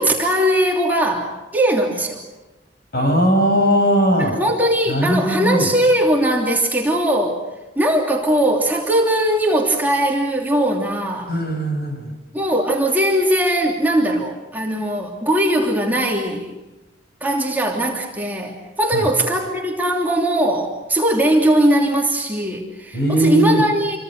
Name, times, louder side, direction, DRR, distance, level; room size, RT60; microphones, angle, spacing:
voice 1, 0.0-2.2 4.2-7.4 7.7-11.4 12.3-16.5 17.2-24.0, right 1 dB, 10° right, -1 dB, 3.1 m, -19 dB
voice 2, 2.9-4.3 4.9-5.7 11.3-12.1 18.9-19.0 22.9-23.6, equal, 55° left, 3 dB, 7.4 m, -18 dB
28.5 x 24.0 x 6.6 m, 1.1 s
head